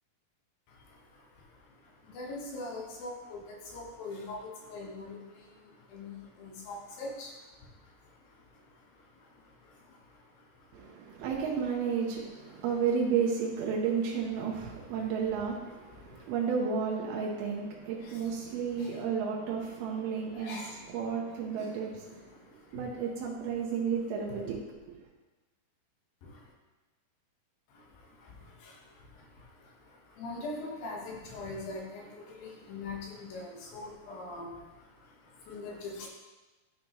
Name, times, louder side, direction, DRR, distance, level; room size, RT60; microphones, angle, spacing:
voice 1, 0.7-11.3 12.5-12.6 14.5-14.6 15.0-15.1 15.9-16.3 18.0-19.0 19.9-20.0 20.3-21.0 21.3-21.7 22.1-22.9 26.2-26.5 27.7-36.1, left 2 dB, 75° left, -2 dB, 2.9 m, -44 dB
voice 2, 10.7-20.6 20.9-22.4 22.7-25.1, right 6 dB, 80° right, -2 dB, 2.8 m, -32 dB
11.5 x 5.1 x 3.0 m, 1.2 s
omnidirectional pair, 4.4 m